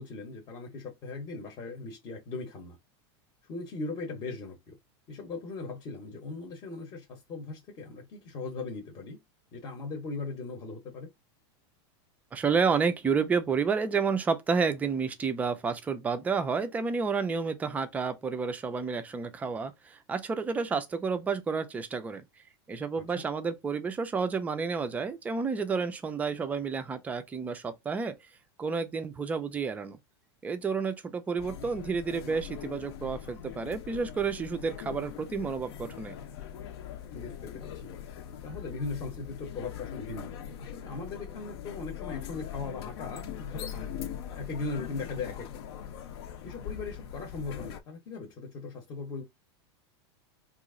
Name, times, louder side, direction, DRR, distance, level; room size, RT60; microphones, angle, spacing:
voice 1, 0.0-2.8 3.5-4.8 5.1-9.2 9.5-11.1 23.0-23.2 37.1-37.9 38.4-44.0 44.3-45.5 46.4-49.2, left 3 dB, 30° left, 0.8 m, -39 dB
voice 2, 12.3-22.2 22.7-28.2 28.6-30.0 30.4-36.2, right 5 dB, 10° right, 0.4 m, -30 dB
sound 1, 31.4-47.8, left 9 dB, 65° left, 0.6 m, -41 dB
2.9 x 2.4 x 3.6 m
supercardioid pair, 160°, 14 cm